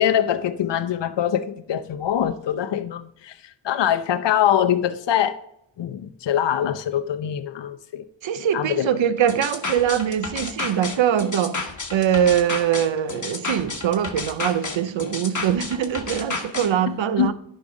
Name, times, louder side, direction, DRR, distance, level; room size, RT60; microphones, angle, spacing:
voice 1, 0.0-5.4 5.8-8.0 8.4-8.9 17.2-17.3, left 10 dB, 65° left, 0.7 m, -23 dB
voice 2, 8.2-11.6 11.9-17.3, right 9 dB, 80° right, 0.7 m, -22 dB
sound 1, 9.3-16.7, left 3 dB, 40° left, 1.4 m, -31 dB
10.5 x 5.1 x 5.2 m
cardioid pair, 65°, 46 cm